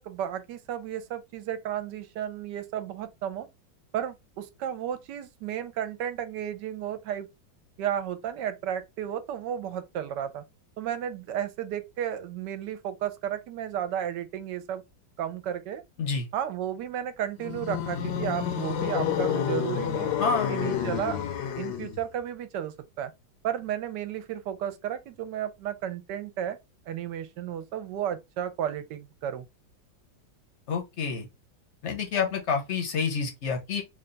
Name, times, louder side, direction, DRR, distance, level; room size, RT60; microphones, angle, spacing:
voice 1, 0.0-3.5 3.9-7.3 7.8-10.4 10.8-14.8 15.2-15.8 16.3-20.1 20.5-21.2 21.6-23.1 23.4-26.6 26.9-29.4, right 10 dB, 75° right, 1.2 m, -33 dB
sound 1, 17.4-22.1, left 8 dB, 80° left, 1.3 m, -29 dB
voice 2, 20.2-20.5 30.7-31.3 31.8-33.8, left 5 dB, 55° left, 0.8 m, -28 dB
3.3 x 2.3 x 3.8 m
omnidirectional pair, 2.0 m